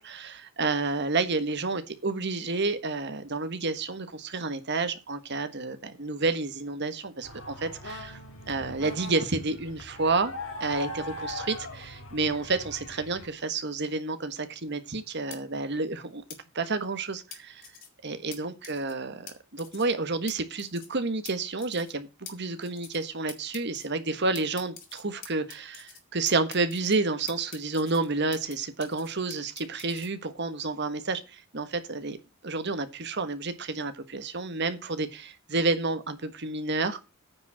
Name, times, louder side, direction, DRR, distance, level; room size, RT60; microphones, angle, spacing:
voice 1, 0.0-8.2 8.5-10.3 10.6-16.2 16.5-17.6 18.0-32.2 32.4-37.0, right 3 dB, 55° right, 1.4 m, -30 dB
sound 1, 7.2-13.3, left 2 dB, 65° left, 2.2 m, -40 dB
sound 2, 15.3-15.4 16.3-16.4 17.3-17.9 18.3-18.4 18.6-18.9 19.3-19.4 19.6-19.9 20.3-20.4 20.6-20.9 21.3-21.4 21.6-21.9 22.3-22.4 22.6-23.0 23.3-23.9 24.3-26.0 26.3-27.0 27.3-28.5 28.8-30.1, left 7 dB, 45° left, 2.7 m, -44 dB
9.4 x 5.2 x 7.4 m
head